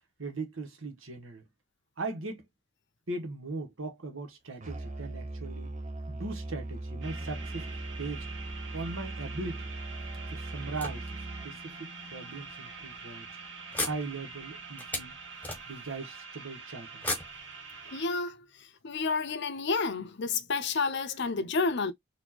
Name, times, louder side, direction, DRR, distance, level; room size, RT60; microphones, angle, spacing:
voice 1, 0.2-1.5 2.0-2.4 3.1-5.7 6.1-7.7 8.0-8.2 8.7-9.7 10.3-11.1 11.4-13.3 13.8-15.1 15.7-17.1, right 3 dB, 85° right, 1.3 m, -39 dB
Musical instrument, 4.6-11.6, right 2 dB, 35° right, 0.8 m, -39 dB
sound 1, 7.0-18.1, right 4 dB, 65° right, 1.6 m, -45 dB
sound 2, 10.3-11.6 12.3-12.4 12.8-13.0 13.7-16.1 17.0-18.1, left 2 dB, 10° left, 1.2 m, -38 dB
voice 2, 17.9-21.9, left 4 dB, 60° left, 0.7 m, -30 dB
4.4 x 2.7 x 2.9 m
head